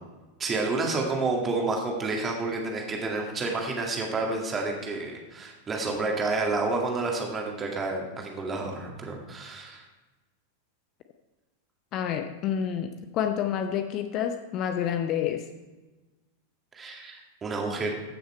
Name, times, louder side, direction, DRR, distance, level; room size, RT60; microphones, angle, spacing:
voice 1, 0.4-9.8 16.7-17.9, right 3 dB, 20° right, 0 dB, 2.1 m, -29 dB
voice 2, 11.9-15.4, left 9 dB, 35° left, 7 dB, 0.7 m, -28 dB
15.0 x 6.5 x 4.4 m, 1.2 s
figure-of-eight pair, 90°, 0 cm